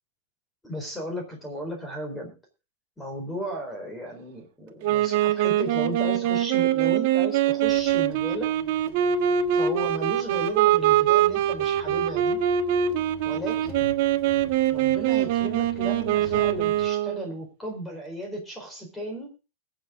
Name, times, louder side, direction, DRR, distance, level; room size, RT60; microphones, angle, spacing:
voice 1, 0.6-2.3 3.0-8.5 9.6-12.4 13.2-13.9 14.7-19.3, equal, 5° left, 2 dB, 4.1 m, -35 dB
Wind instrument woodwind instrument, 4.8-17.3, right 11 dB, 50° right, 1.4 m, -23 dB
sound 1, 7.6-16.9, left 2 dB, 45° left, 4.8 m, -46 dB
21.5 x 7.8 x 3.7 m, 0.31 s
supercardioid pair, 170°, 0 cm